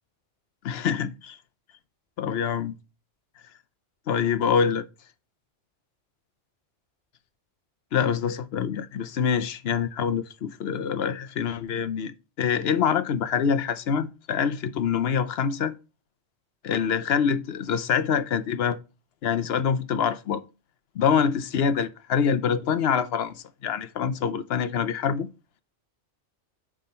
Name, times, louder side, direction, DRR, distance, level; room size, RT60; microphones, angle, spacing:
voice 1, 0.6-1.4 2.2-2.7 4.1-4.8 7.9-15.7 16.6-18.8 19.2-20.4 20.9-25.3, left 7 dB, 65° left, 0.8 m, -25 dB
9.2 x 3.6 x 4.3 m
omnidirectional pair, 1.2 m